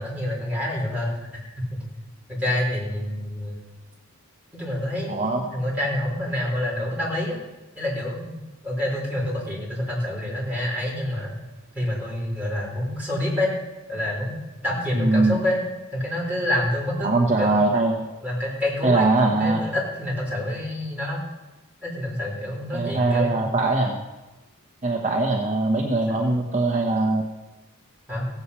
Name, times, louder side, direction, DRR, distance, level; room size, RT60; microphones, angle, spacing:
voice 1, 0.0-1.5 2.3-3.6 4.5-7.4 7.8-8.3 8.6-11.3 11.7-13.5 13.9-14.3 14.6-15.6 15.9-17.5 18.2-21.2 21.8-23.5 26.1-26.3 28.1-28.3, left 1 dB, 5° right, -5 dB, 4.3 m, -27 dB
voice 2, 5.1-5.4 14.9-15.4 17.0-18.0 18.8-19.6 22.7-24.0 24.8-27.2, right 2 dB, 35° right, 1 dB, 0.9 m, -21 dB
16.0 x 8.2 x 5.6 m, 1.1 s
head